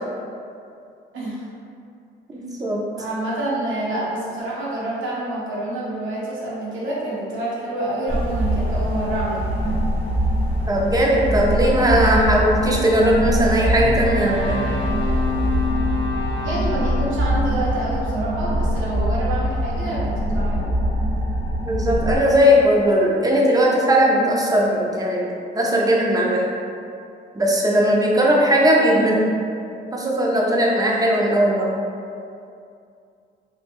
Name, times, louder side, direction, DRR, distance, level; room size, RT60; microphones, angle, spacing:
voice 1, 1.1-1.4 3.0-9.8 16.4-21.0, right 1 dB, 80° right, -7 dB, 1.1 m, -27 dB
voice 2, 2.3-2.8 10.7-14.6 21.6-26.4 27.3-29.3 29.9-31.7, equal, 20° right, -3 dB, 0.6 m, -18 dB
sound 1, 8.1-22.2, equal, 30° left, 1.1 m, -23 dB
sound 2, 13.7-20.0, left 4 dB, 75° left, 0.7 m, -30 dB
3.2 x 2.3 x 3.5 m, 2.5 s
cardioid pair, 90°, 20 cm